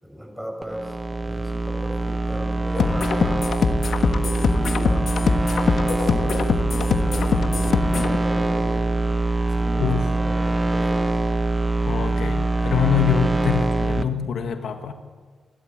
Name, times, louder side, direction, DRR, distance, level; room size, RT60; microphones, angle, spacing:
voice 1, 0.0-3.5 4.1-9.0 9.5-11.1, equal, ahead, 1 dB, 7.3 m, -37 dB
sound 1, 0.6-14.0, right 2 dB, 20° right, 1.2 m, -23 dB
sound 2, 2.8-8.2, left 5 dB, 65° left, 1.3 m, -23 dB
voice 2, 11.9-14.9, left 7 dB, 80° left, 6 dB, 1.7 m, -24 dB
29.0 x 12.5 x 7.9 m, 1.4 s
cardioid pair, 95°, 0 cm